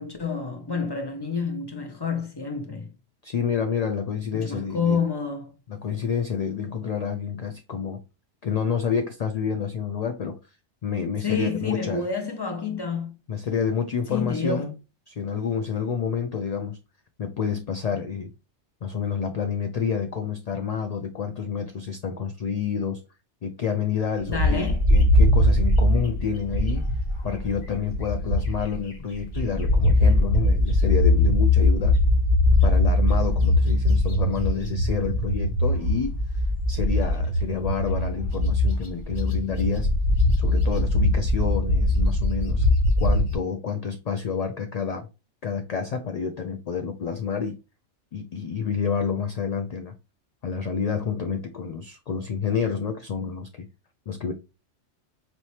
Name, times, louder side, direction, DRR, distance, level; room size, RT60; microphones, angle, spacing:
voice 1, 0.0-2.9 4.3-5.5 11.2-13.1 14.1-14.7 24.3-24.9, left 5 dB, 25° left, 0.9 m, -28 dB
voice 2, 3.2-5.0 5.7-8.0 8.4-10.4 10.8-12.1 13.3-14.7 15.1-16.8 17.2-18.3 18.8-23.0 23.4-26.9 27.2-32.0 32.6-36.2 36.7-39.9 40.4-42.6 43.0-45.1 45.4-47.6 48.1-49.9 50.4-53.7 54.1-54.3, left 6 dB, 70° left, 0.3 m, -29 dB
Bird, 24.3-28.8 29.1-43.3, left 1 dB, 45° left, 1.4 m, -21 dB
4.4 x 2.8 x 3.1 m
omnidirectional pair, 1.2 m